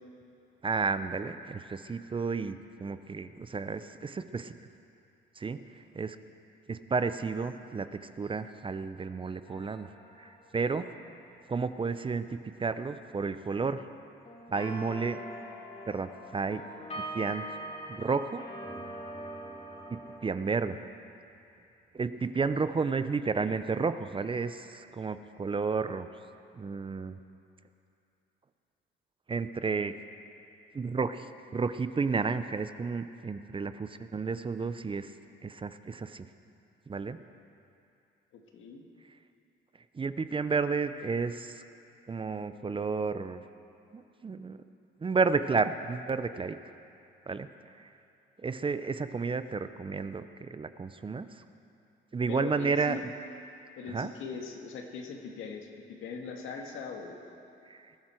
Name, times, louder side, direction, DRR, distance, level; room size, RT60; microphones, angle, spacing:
voice 1, 0.6-4.5 5.4-5.6 6.0-6.2 6.7-9.9 10.2-10.9 11.5-13.8 14.5-15.2 15.9-16.6 17.1-17.5 18.0-18.4 19.9-20.8 21.9-26.1 26.6-27.2 29.3-29.9 30.7-31.3 31.5-35.1 35.4-36.3 36.9-37.2 39.9-41.6 42.1-43.4 43.9-44.6 45.0-46.6 47.3-47.5 48.4-51.3 52.1-53.0 53.9-54.1 57.7-57.8, right 4 dB, 25° right, 12 dB, 0.6 m, -31 dB
sound 1, 9.5-11.5 14.2-20.2, right 1 dB, 35° left, 3.6 m, -43 dB
voice 2, 38.3-38.8 52.3-53.0 53.8-57.2, left 5 dB, 85° left, 2 dB, 1.7 m, -41 dB
20.5 x 12.5 x 4.5 m, 2.7 s
cardioid pair, 90°, 20 cm